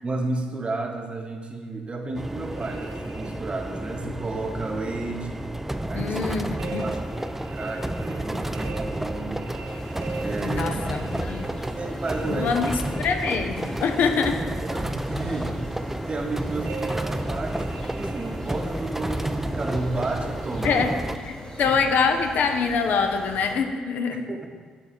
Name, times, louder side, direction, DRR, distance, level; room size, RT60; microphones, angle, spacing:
voice 1, 0.0-5.5 5.9-6.3 6.8-7.3 7.5-9.5 10.2-10.8 11.8-12.6 14.6-17.7 18.0-21.0 21.6-21.8 24.1-24.5, right 3 dB, 35° right, 3 dB, 0.8 m, -32 dB
sound 1, 2.1-21.2, right 1 dB, 10° right, 0.3 m, -31 dB
sound 2, 2.4-4.0 6.6-13.9 16.6-18.9, right 4 dB, 70° right, 0.6 m, -41 dB
voice 2, 5.9-6.9 10.4-11.4 12.3-12.7 12.9-14.4 20.6-20.9 21.3-24.3, left 5 dB, 60° left, 6 dB, 0.5 m, -25 dB
sound 3, 9.7-23.6, left 1 dB, 25° left, 1.0 m, -42 dB
7.1 x 3.4 x 4.2 m, 1.5 s
hypercardioid pair, 45°, 3 cm